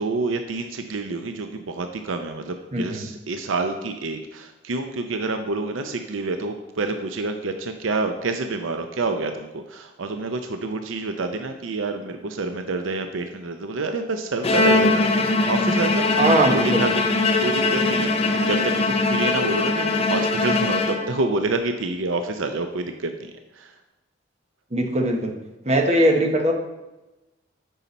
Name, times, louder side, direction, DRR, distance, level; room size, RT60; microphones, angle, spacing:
voice 1, 0.0-16.1 16.5-17.0 17.4-23.7, right 3 dB, 85° right, 7 dB, 0.6 m, -28 dB
voice 2, 2.7-3.0 16.2-16.8 24.7-25.3 25.6-26.5, right 1 dB, 35° right, 3 dB, 1.0 m, -20 dB
Bowed string instrument, 14.4-21.4, left 2 dB, 30° left, 0.7 m, -21 dB
9.2 x 5.7 x 4.1 m, 1.0 s
head